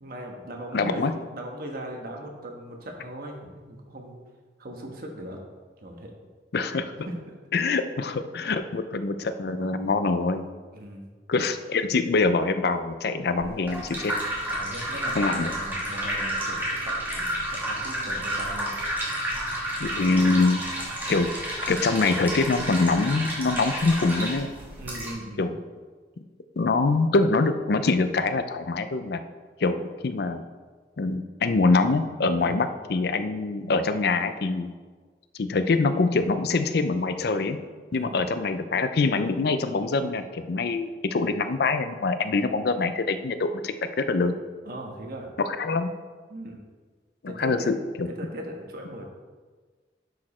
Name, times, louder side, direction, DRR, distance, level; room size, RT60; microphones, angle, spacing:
voice 1, 0.0-4.2 4.6-5.4 5.8-6.1 7.1-7.2 8.8-8.9 10.7-11.1 14.5-18.8 24.8-25.4 32.4-32.6 37.9-38.2 44.6-45.3 46.3-46.6 47.2-47.7 48.0-49.1, right 1 dB, 55° right, 1 dB, 1.3 m, -39 dB
voice 2, 0.7-1.1 6.5-6.9 7.5-10.5 11.3-14.2 15.2-15.5 19.8-20.6 21.1-21.3 21.7-24.5 25.4-25.6 26.6-29.2 29.6-30.4 31.0-34.7 35.4-37.6 37.9-44.3 45.4-45.9 47.2-48.1, left 3 dB, 60° left, 10 dB, 0.5 m, -24 dB
sound 1, 13.4-25.1, right 1 dB, 10° right, 2.0 m, -31 dB
10.5 x 4.9 x 4.3 m, 1.5 s
head